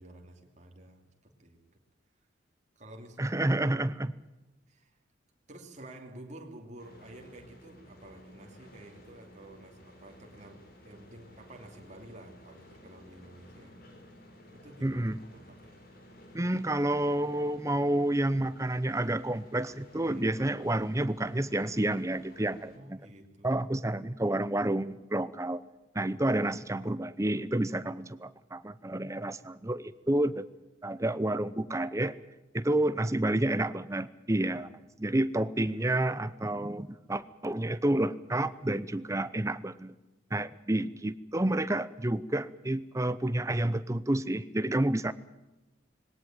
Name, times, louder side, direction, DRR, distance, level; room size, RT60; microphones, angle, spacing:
voice 1, 0.0-1.6 2.8-3.3 4.7-5.0 5.5-13.7 14.5-15.0 15.3-15.7 20.0-20.3 22.7-23.6 26.0-26.3 27.8-27.9 32.6-32.9 34.4-34.7 39.1-39.3, right 1 dB, 35° right, 2 dB, 2.8 m, -51 dB
voice 2, 3.2-4.2 14.8-15.2 16.3-23.0 23.4-25.6 25.9-30.5 30.8-32.2 32.5-34.7 35.0-39.9 40.3-45.1, right 1 dB, 15° right, 15 dB, 0.7 m, -29 dB
sound 1, 6.8-22.8, left 1 dB, 50° left, 4.3 m, -54 dB
20.5 x 18.0 x 9.1 m, 1.0 s
head